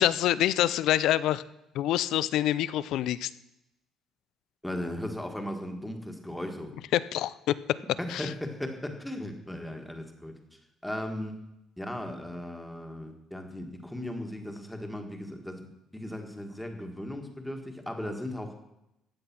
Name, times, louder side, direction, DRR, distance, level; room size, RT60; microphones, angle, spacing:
voice 1, 0.0-1.4 1.7-3.3 6.9-7.8 8.1-8.3, left 13 dB, 60° left, 17 dB, 0.6 m, -26 dB
voice 2, 4.6-6.7 8.0-10.4 10.8-11.4 11.8-18.6, left 1 dB, 5° left, 4 dB, 1.6 m, -37 dB
15.5 x 9.9 x 6.0 m, 0.86 s
cardioid pair, 175°, 0 cm